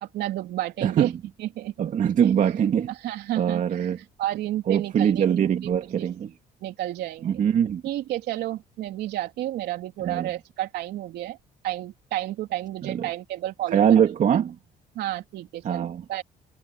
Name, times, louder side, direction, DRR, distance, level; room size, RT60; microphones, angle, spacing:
voice 1, 0.0-1.1 1.4-1.9 3.0-3.9 4.2-5.3 6.0-6.1 6.6-7.3 7.8-11.4 11.6-14.1 15.0-16.2, right 14 dB, 75° right, 3.6 m, -31 dB
voice 2, 0.8-1.1 1.8-2.9 3.4-4.0 4.7-6.3 7.2-7.8 10.0-10.3 12.8-13.1 13.7-14.6 15.6-16.0, right 8 dB, 50° right, 2.3 m, -22 dB
cardioid pair, 110°, 17 cm